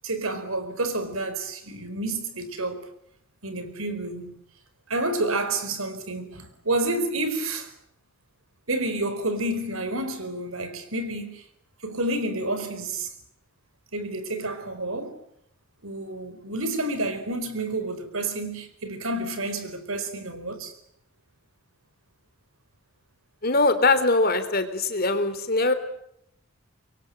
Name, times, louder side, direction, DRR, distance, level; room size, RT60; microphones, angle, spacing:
voice 1, 0.0-2.9 3.4-4.4 4.9-7.7 8.7-11.4 11.8-13.1 13.9-15.2 15.8-20.7, right 2 dB, 85° right, 4.5 m, -29 dB
voice 2, 23.4-25.7, left 3 dB, 45° left, 3.4 m, -22 dB
25.5 x 23.0 x 9.2 m
head